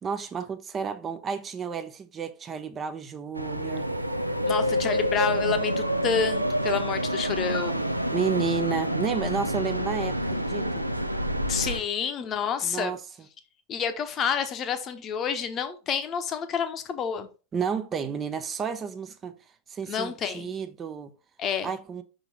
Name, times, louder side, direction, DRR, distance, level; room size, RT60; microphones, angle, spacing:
voice 1, 0.0-3.9 8.1-10.9 12.6-13.0 17.5-19.3 19.7-21.1 21.6-22.0, right 6 dB, 25° right, 0.5 m, -31 dB
sound 1, 3.3-11.8, equal, 90° right, 0.5 m, -28 dB
voice 2, 4.5-7.9 11.5-12.9 13.7-17.3 19.9-20.5 21.4-21.7, left 7 dB, 30° left, 0.8 m, -29 dB
5.7 x 3.8 x 4.3 m
figure-of-eight pair, 90°, 0 cm